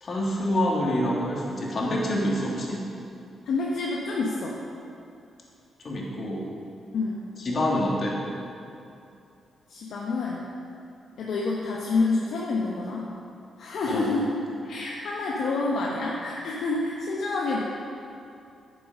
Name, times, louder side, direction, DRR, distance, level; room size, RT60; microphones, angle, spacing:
voice 1, 0.0-2.8 5.8-6.5 7.4-8.2 13.9-14.1, left 1 dB, 55° left, -3 dB, 2.7 m, -26 dB
voice 2, 3.5-4.5 6.9-7.2 9.7-10.4 11.2-13.0 13.6-14.4 14.6-17.6, left 3 dB, 75° left, -4 dB, 1.2 m, -28 dB
10.5 x 6.9 x 6.5 m, 2.6 s
supercardioid pair, 55°, 0 cm